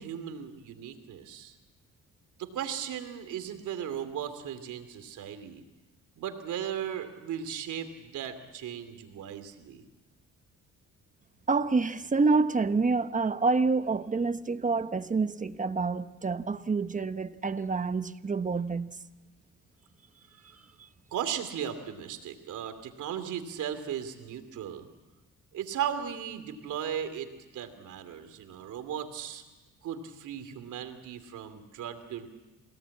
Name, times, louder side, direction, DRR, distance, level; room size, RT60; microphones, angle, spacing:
voice 1, 0.0-1.6 2.4-5.6 6.2-9.8 20.4-20.6 21.1-24.9 25.5-29.4 29.8-32.3, right 9 dB, 80° right, 2.8 m, -37 dB
voice 2, 11.5-19.0, right 4 dB, 25° right, 1.1 m, -27 dB
28.5 x 18.0 x 8.5 m
cardioid pair, 90°, 30 cm